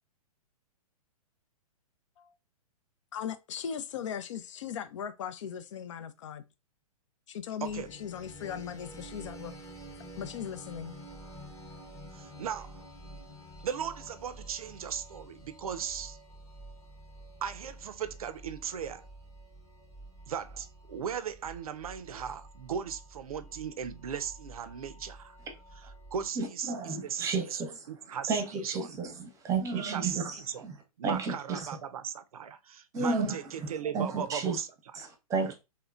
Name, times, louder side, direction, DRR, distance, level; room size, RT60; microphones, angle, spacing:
voice 1, 3.1-6.4 7.3-9.5 10.2-11.0, left 8 dB, 50° left, 0.5 m, -38 dB
sound 1, 7.7-26.3, right 1 dB, 15° left, 0.9 m, -49 dB
voice 2, 12.1-12.8 13.6-16.2 17.4-19.1 20.3-25.4 25.8-27.6 27.9-29.0 29.7-30.7 31.0-35.1 35.4-35.5, right 8 dB, 65° right, 0.5 m, -37 dB
voice 3, 26.4-27.8 28.3-30.7 31.0-31.6 32.9-34.6 34.9-35.5, right 4 dB, 15° right, 0.8 m, -32 dB
3.1 x 2.9 x 2.4 m
figure-of-eight pair, 115°, 20 cm